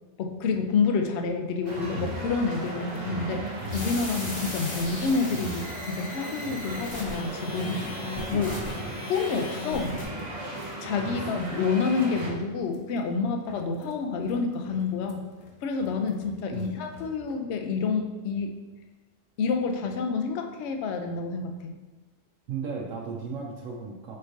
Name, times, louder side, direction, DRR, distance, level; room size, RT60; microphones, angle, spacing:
voice 1, 0.2-3.4 3.7-7.8 8.3-8.5 9.1-10.0 10.8-15.2 15.6-18.5 19.4-21.7, left 4 dB, 65° left, 5 dB, 0.8 m, -28 dB
sound 1, 1.7-12.3, right 1 dB, 35° right, 0.7 m, -36 dB
sound 2, 2.5-17.3, left 2 dB, 85° left, 1.1 m, -50 dB
sound 3, 3.7-10.0, left 2 dB, 40° left, 1.1 m, -38 dB
voice 2, 8.3-8.6 11.2-11.3 16.5-16.8 22.5-24.2, right 5 dB, 85° right, -1 dB, 1.0 m, -36 dB
4.7 x 4.4 x 2.6 m, 1.2 s
omnidirectional pair, 1.3 m